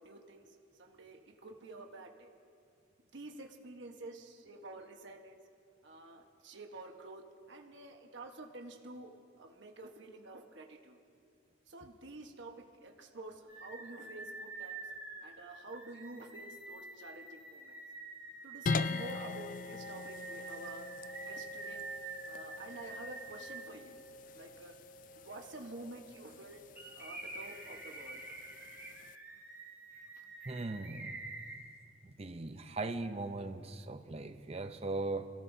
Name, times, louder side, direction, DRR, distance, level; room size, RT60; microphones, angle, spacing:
voice 1, 0.0-2.3 3.1-5.4 5.8-11.0 11.7-14.9 15.2-17.8 18.4-20.9 21.3-21.8 22.3-24.0 24.3-24.8 25.2-26.6 26.9-28.2, right 2 dB, 65° right, 2 dB, 1.3 m, -49 dB
High Pitched Mandrake Double, 13.5-23.6 24.2-24.3 26.8-31.6, right 3 dB, 10° right, 3.7 m, -47 dB
sound 1, 18.7-29.2, left 3 dB, 40° left, 0.3 m, -42 dB
voice 2, 30.5-31.2 32.0-35.3, right 2 dB, 30° right, 8 dB, 0.6 m, -39 dB
27.0 x 17.0 x 2.7 m, 2.4 s
head